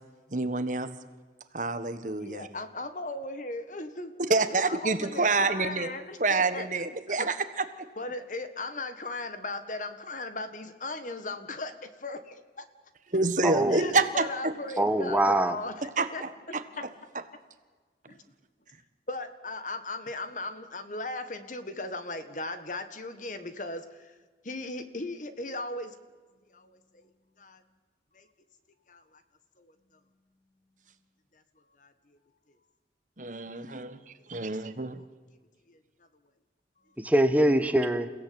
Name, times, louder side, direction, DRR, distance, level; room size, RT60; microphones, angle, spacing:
voice 1, 0.3-0.9 1.5-2.5 4.3-5.9 6.2-7.9 13.1-14.5 16.0-16.6 33.2-34.0 34.3-35.0, right 3 dB, 45° right, 10 dB, 1.5 m, -27 dB
voice 2, 2.2-4.1 4.7-6.7 7.1-7.3 8.0-12.7 13.7-15.8 16.1-16.9 18.1-18.2 19.1-24.1 24.4-26.0 26.5-27.1 27.4-27.6 28.1-28.3 28.9-29.2 29.6-29.7 31.3-31.4 31.8-31.9 35.7-35.8, left 2 dB, 45° left, 10 dB, 1.7 m, -37 dB
voice 3, 13.4-13.9 14.8-15.6 37.0-38.1, right 1 dB, 10° right, 9 dB, 1.3 m, -24 dB
29.0 x 16.5 x 8.8 m, 1.4 s
head